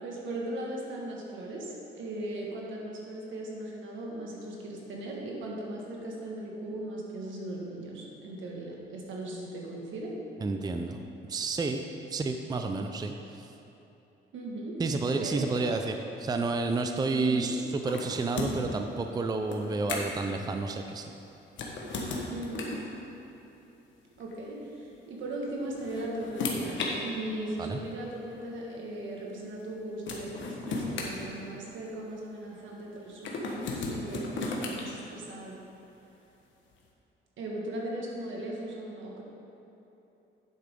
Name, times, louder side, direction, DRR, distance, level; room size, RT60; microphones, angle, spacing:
voice 1, 0.0-10.1 14.3-15.8 17.1-17.5 22.3-22.6 24.2-35.6 37.4-39.2, right 1 dB, 75° right, -2 dB, 1.7 m, -38 dB
voice 2, 10.4-11.0 11.3-11.8 12.1-13.1 14.8-21.1 27.6-27.8, right 3 dB, 20° right, 5 dB, 0.5 m, -30 dB
sound 1, 17.9-18.7 19.5-20.2 21.5-22.9 24.2-24.3 25.5-26.9 27.9-28.0 29.6-29.7 30.1-31.9 33.2-34.8, left 3 dB, 70° left, 1.3 m, -34 dB
9.3 x 7.6 x 3.7 m, 3.0 s
cardioid pair, 90°, 20 cm